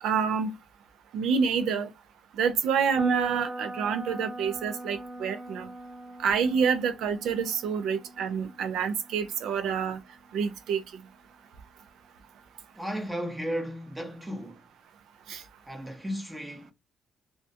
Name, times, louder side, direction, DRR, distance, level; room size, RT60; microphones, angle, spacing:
voice 1, 0.0-0.5 1.1-1.9 2.4-5.7 6.2-10.0 10.3-10.8 15.3-15.4, right 6 dB, 80° right, 0.4 m, -27 dB
sound 1, 3.0-10.9, right 1 dB, 35° right, 0.9 m, -41 dB
voice 2, 12.7-14.6 15.6-16.7, equal, 10° right, 0.7 m, -34 dB
2.3 x 2.2 x 2.6 m
cardioid pair, 90°, 0 cm